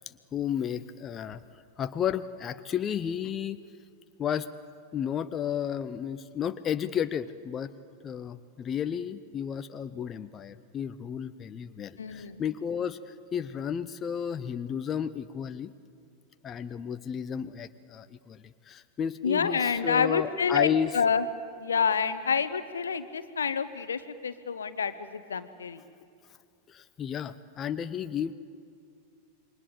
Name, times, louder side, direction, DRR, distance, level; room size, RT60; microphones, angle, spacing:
voice 1, 0.1-1.4 1.8-3.6 4.2-4.5 4.9-7.7 8.0-15.7 16.4-21.0 26.7-28.3, left 8 dB, 25° left, 11 dB, 0.7 m, -33 dB
voice 2, 12.0-12.4 19.2-21.2 21.6-25.8, left 6 dB, 70° left, 13 dB, 1.0 m, -28 dB
27.5 x 22.5 x 8.5 m, 2.4 s
figure-of-eight pair, 90°, 0 cm